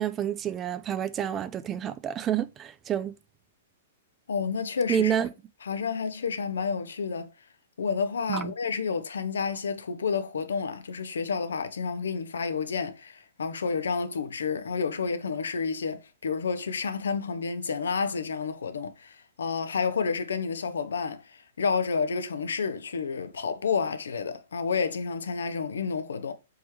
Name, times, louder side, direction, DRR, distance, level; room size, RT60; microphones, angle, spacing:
voice 1, 0.0-3.1 4.9-5.3 8.3-8.5, right 9 dB, 25° right, 0.3 m, -28 dB
voice 2, 4.3-5.2 5.6-7.3 7.8-26.3, left 5 dB, 85° left, 0.5 m, -30 dB
3.5 x 3.1 x 3.0 m
hypercardioid pair, 135°, 0 cm